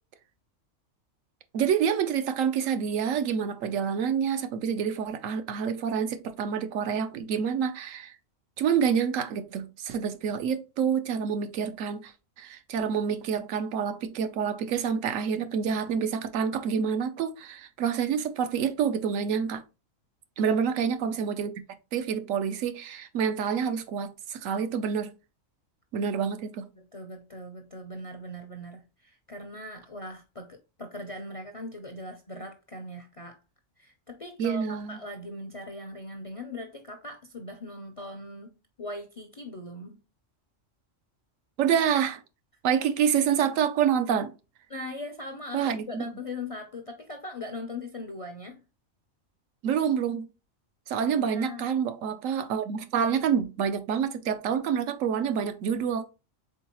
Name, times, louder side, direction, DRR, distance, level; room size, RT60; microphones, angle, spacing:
voice 1, 1.5-8.1 8.6-12.1 12.4-19.6 20.4-21.5 21.9-25.1 25.9-26.7 34.4-35.0 41.6-42.2 42.6-44.3 45.5-46.1 49.6-50.3 50.9-56.0, right 7 dB, 80° right, 1.0 m, -27 dB
voice 2, 26.7-33.4 33.8-40.0 44.7-48.6 51.3-51.7, left 1 dB, 45° left, 0.4 m, -40 dB
4.6 x 3.8 x 2.9 m
omnidirectional pair, 1.3 m